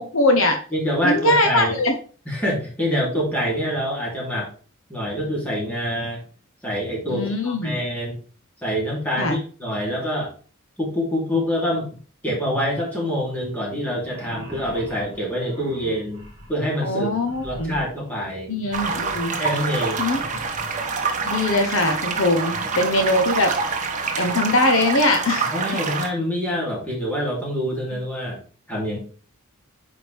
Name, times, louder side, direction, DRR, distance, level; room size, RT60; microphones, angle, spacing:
voice 1, 0.0-0.6 1.0-2.0 7.1-7.7 9.2-9.4 16.8-17.7 18.5-19.4 20.0-20.2 21.3-23.5 24.2-25.5, left 2 dB, 65° left, 5 dB, 1.0 m, -21 dB
voice 2, 0.7-1.7 2.3-4.5 4.9-6.2 6.6-8.2 8.6-10.3 10.8-12.0 12.2-16.2 16.5-17.2 17.4-18.5 19.4-20.0 22.5-22.7 25.5-28.4 28.7-29.0, equal, 5° left, -4 dB, 3.1 m, -26 dB
sound 1, 13.9-20.8, equal, 20° right, 3.4 m, -42 dB
sound 2, 18.7-26.1, right 4 dB, 35° right, 1.1 m, -26 dB
9.0 x 4.9 x 3.5 m, 0.40 s
head